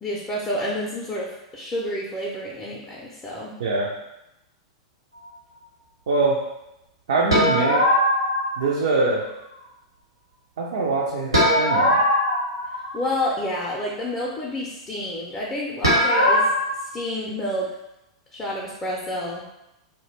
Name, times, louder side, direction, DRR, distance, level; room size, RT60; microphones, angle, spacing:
voice 1, 0.0-3.5 12.9-16.5 16.8-17.7 18.3-19.4, left 1 dB, 20° left, -4 dB, 0.5 m, -29 dB
voice 2, 6.1-6.4 7.1-7.8 8.6-9.2 10.6-12.0, right 3 dB, 65° right, -3 dB, 0.4 m, -23 dB
sound 1, 7.3-8.6 11.3-13.2 15.8-16.6, equal, 85° right, 1.0 m, -20 dB
2.3 x 2.1 x 3.1 m, 0.90 s
figure-of-eight pair, 90°, 3 cm